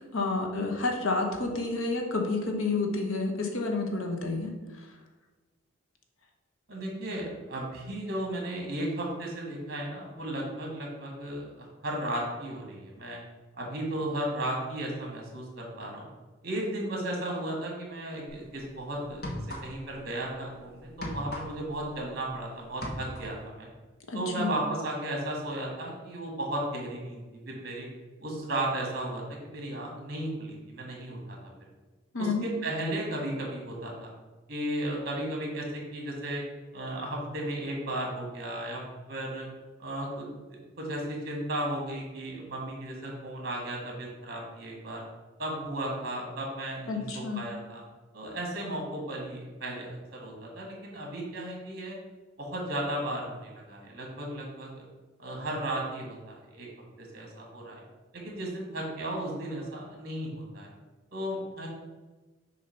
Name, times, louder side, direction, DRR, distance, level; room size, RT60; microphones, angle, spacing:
voice 1, 0.1-4.9 24.1-24.5 32.1-32.5 46.9-47.4, left 3 dB, 85° left, 3 dB, 1.0 m, -30 dB
voice 2, 6.7-13.2 13.6-16.1 16.4-19.2 19.6-23.7 24.1-27.9 28.2-31.4 32.2-34.1 34.5-36.4 36.7-38.8 39.1-39.5 39.8-45.0 45.4-47.8 48.1-52.0 52.4-54.7 55.2-56.7 57.0-57.8 58.1-60.7 61.1-61.7, right 1 dB, 50° right, -1 dB, 1.8 m, -35 dB
sound 1, 18.3-18.5 19.1-20.0 20.3-22.4 22.7-23.4, left 1 dB, 50° left, 1.2 m, -38 dB
6.3 x 2.9 x 5.6 m, 1.3 s
head